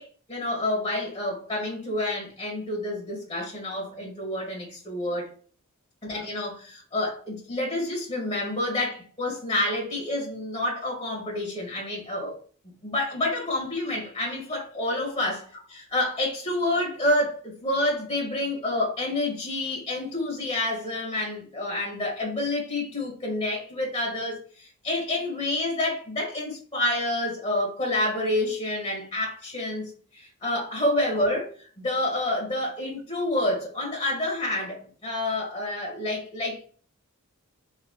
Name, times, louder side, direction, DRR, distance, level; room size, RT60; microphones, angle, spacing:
voice 1, 0.0-5.3 6.0-12.4 12.8-36.7, left 1 dB, 20° left, -2 dB, 1.3 m, -28 dB
3.9 x 2.7 x 2.8 m, 0.43 s
head